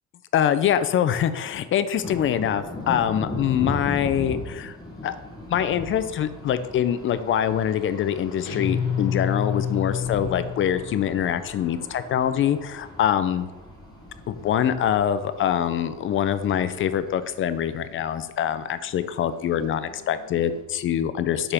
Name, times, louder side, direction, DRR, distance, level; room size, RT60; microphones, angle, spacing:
voice 1, 0.3-4.8 5.0-5.2 5.5-13.5 14.3-21.5, left 9 dB, 40° left, 12 dB, 0.4 m, -24 dB
sound 1, 2.0-20.6, left 2 dB, 10° left, 1.2 m, -39 dB
Guitar, 8.4-11.0, left 7 dB, 85° left, 1.2 m, -28 dB
5.0 x 4.7 x 5.7 m, 1.1 s
cardioid pair, 150°, 32 cm